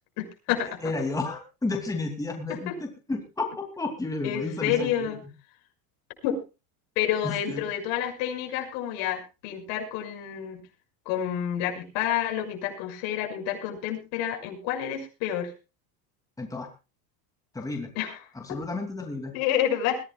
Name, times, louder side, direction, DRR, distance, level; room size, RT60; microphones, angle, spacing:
voice 1, 0.2-0.8 2.5-2.7 4.2-5.2 6.2-6.4 7.0-10.6 11.1-15.5 18.0-18.2 19.3-20.0, left 10 dB, 65° left, 3 dB, 6.2 m, -29 dB
voice 2, 0.8-5.1 7.2-7.7 16.4-16.7 17.5-17.9 18.3-19.3, left 3 dB, 5° left, 3 dB, 2.6 m, -32 dB
22.0 x 16.0 x 2.4 m, 0.30 s
supercardioid pair, 140°, 45 cm